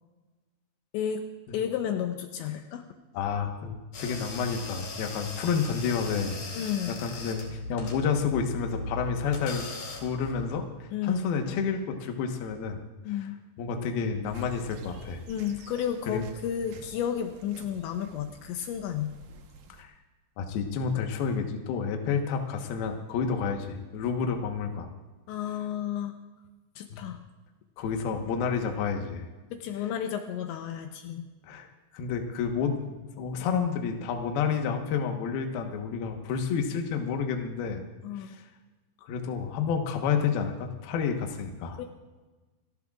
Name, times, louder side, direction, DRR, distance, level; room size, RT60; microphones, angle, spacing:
voice 1, 1.5-2.8 6.5-7.0 10.9-11.2 13.0-13.4 15.3-19.1 25.3-26.1 26.8-27.2 29.5-31.2 38.0-38.3 41.8-41.9, left 9 dB, 80° left, 5 dB, 3.0 m, -32 dB
voice 2, 3.1-6.4 6.9-12.8 13.6-15.2 16.1-16.2 19.8-19.9 20.4-24.9 26.9-27.0 27.8-29.3 31.4-31.7 31.9-32.8 33.2-37.8 38.2-38.4 39.0-41.8, left 6 dB, 65° left, 4 dB, 2.8 m, -30 dB
sound 1, 3.9-10.6, left 2 dB, 50° left, 3.5 m, -38 dB
sound 2, 14.3-19.8, right 2 dB, 70° right, 2.2 m, -49 dB
29.0 x 14.5 x 2.4 m, 1.2 s
omnidirectional pair, 5.4 m